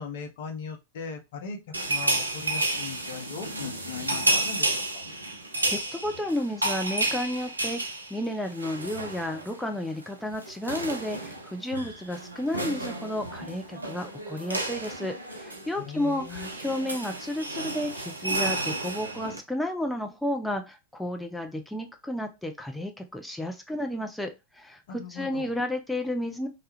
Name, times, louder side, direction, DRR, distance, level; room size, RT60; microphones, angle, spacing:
voice 1, 0.0-1.6 1.9-5.0 15.8-16.5 25.0-25.5, left 5 dB, 55° left, 4 dB, 0.5 m, -39 dB
sound 1, 1.7-9.6 9.9-10.1 10.3-19.4, right 2 dB, 80° right, 0.4 m, -31 dB
voice 2, 5.7-7.8 8.1-26.5, left 1 dB, 5° left, 4 dB, 0.3 m, -32 dB
2.2 x 2.1 x 2.8 m, 0.25 s
figure-of-eight pair, 90°, 0 cm